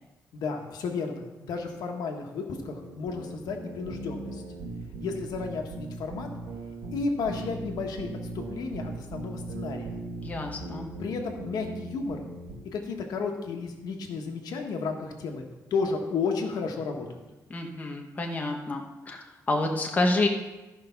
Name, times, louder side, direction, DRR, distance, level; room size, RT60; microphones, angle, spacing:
voice 1, 0.3-4.4 5.0-6.3 6.9-9.9 11.0-12.2 12.7-15.4 15.7-17.2, left 4 dB, 80° left, 3 dB, 1.4 m, -32 dB
sound 1, 2.5-12.5, right 3 dB, 75° right, 2.7 m, -39 dB
voice 2, 10.2-10.9 17.5-20.3, left 2 dB, 25° left, 2 dB, 1.0 m, -28 dB
13.5 x 5.1 x 5.8 m, 1.1 s
cardioid pair, 155°, 7 cm